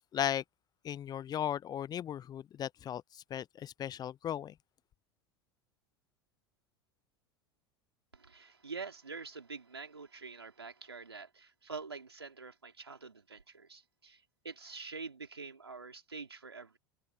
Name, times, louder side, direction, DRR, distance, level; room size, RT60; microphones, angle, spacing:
voice 1, 0.1-0.4 0.8-4.5, left 10 dB, 30° left, 0.6 m, -36 dB
voice 2, 8.1-16.8, right 4 dB, 90° right, 4.2 m, -46 dB
figure-of-eight pair, 80°, 13 cm